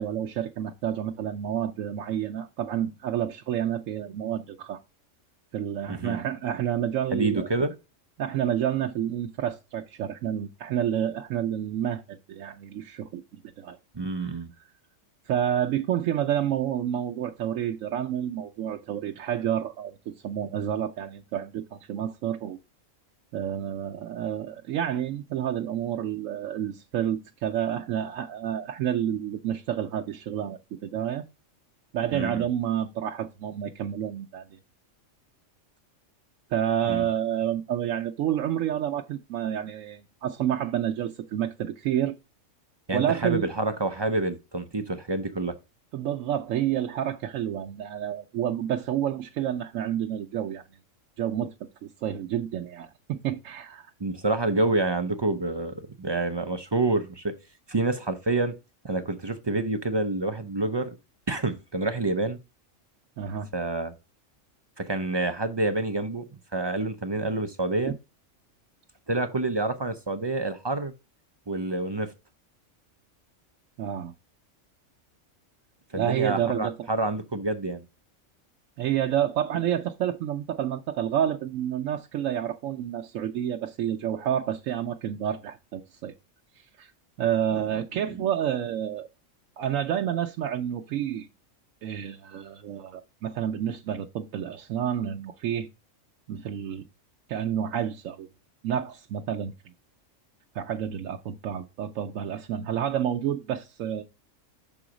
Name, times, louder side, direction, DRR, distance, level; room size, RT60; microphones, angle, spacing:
voice 1, 0.0-4.8 5.5-7.5 8.2-13.8 15.3-22.6 23.3-31.2 31.9-34.6 36.5-42.1 42.9-43.5 45.9-50.6 51.2-51.5 51.8-53.9 63.2-63.5 67.9-68.0 73.8-74.1 75.9-76.7 78.8-86.1 86.8-86.9 87.2-89.1 89.6-91.3 91.8-95.7 96.3-96.8 97.3-98.3 98.6-99.5 100.5-104.0, right 10 dB, 85° right, 1.0 m, -29 dB
voice 2, 7.1-7.7 13.9-14.5 32.1-32.5 36.9-37.1 42.9-45.5 54.0-57.3 57.7-58.5 58.8-60.9 61.3-62.4 63.5-63.9 64.8-66.2 66.5-67.9 69.1-70.9 71.5-72.1 75.9-77.8 88.1-88.2, right 2 dB, 35° right, 0.4 m, -28 dB
6.2 x 3.8 x 6.1 m
omnidirectional pair, 1.3 m